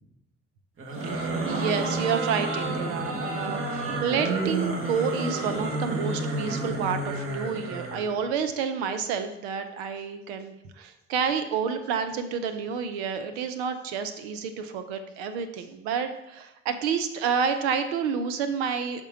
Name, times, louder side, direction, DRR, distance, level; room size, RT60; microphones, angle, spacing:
sound 1, 0.8-8.1, right 2 dB, 40° right, 1.3 m, -30 dB
voice 1, 1.0-19.1, right 6 dB, 70° right, 8 dB, 0.6 m, -29 dB
6.6 x 3.6 x 4.8 m, 0.92 s
figure-of-eight pair, 50°, 32 cm